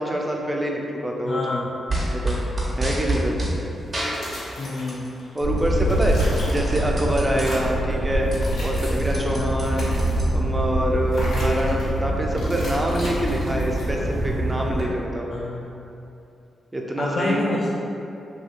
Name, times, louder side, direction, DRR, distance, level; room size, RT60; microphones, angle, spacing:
voice 1, 0.0-1.6 2.1-2.4 2.8-3.3 5.3-6.2 6.5-8.3 8.6-10.0 10.3-15.3 16.7-17.5, right 1 dB, 20° right, 0 dB, 0.4 m, -25 dB
voice 2, 1.2-1.7 4.6-5.1 9.3-9.6 15.3-15.6 17.0-17.7, left 2 dB, 60° left, -5 dB, 0.3 m, -28 dB
sound 1, 1.9-3.6 3.9-5.1 5.4-7.4 7.9-8.0 8.2-10.6, right 1 dB, 45° right, 0.8 m, -28 dB
sound 2, 3.8-5.3 5.6-6.9 7.3-7.8 8.2-9.2 9.5-10.3 11.1-11.9 12.4-14.1, left 1 dB, 80° left, 0.9 m, -37 dB
sound 3, 5.4-14.8, right 1 dB, 90° right, 0.7 m, -25 dB
2.7 x 2.7 x 2.5 m, 2.7 s
supercardioid pair, 50°, 0 cm